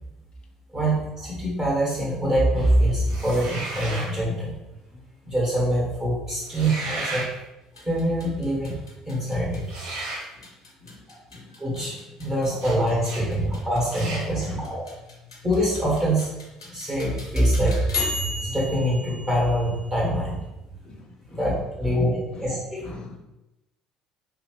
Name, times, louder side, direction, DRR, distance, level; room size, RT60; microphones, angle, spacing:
voice 1, 0.7-4.5 5.3-7.3 7.8-8.8 9.1-9.6 11.6-14.8 15.4-16.3 16.7-17.9 18.1-20.4 21.3-22.9, right 1 dB, 25° right, -5 dB, 1.4 m, -24 dB
sound 1, 3.1-4.1 6.4-7.3 9.7-10.3 12.6-12.8 13.0-13.3 13.9-14.3, right 2 dB, 70° right, 0.6 m, -33 dB
sound 2, 7.6-20.4, left 2 dB, 90° left, 0.5 m, -37 dB
voice 2, 13.9-14.7 20.8-22.0 22.3-22.6 22.8-23.2, left 4 dB, 40° left, 3 dB, 0.5 m, -43 dB
2.7 x 2.4 x 3.1 m, 0.96 s
hypercardioid pair, 55°, 2 cm